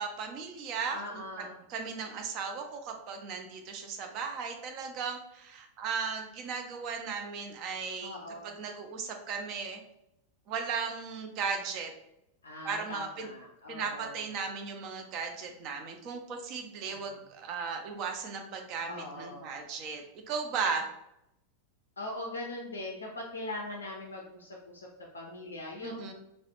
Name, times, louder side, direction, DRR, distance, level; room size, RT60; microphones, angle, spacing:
voice 1, 0.0-8.2 8.4-9.8 10.5-11.9 12.6-13.3 13.7-20.9 25.8-26.1, right 5 dB, 40° right, 4 dB, 0.4 m, -36 dB
voice 2, 0.9-1.6 8.0-8.6 12.4-14.2 16.9-17.2 18.9-19.5 22.0-24.9 25.1-26.0, left 2 dB, 75° left, -1 dB, 0.3 m, -41 dB
2.3 x 2.0 x 2.8 m, 0.82 s
figure-of-eight pair, 90°, 0 cm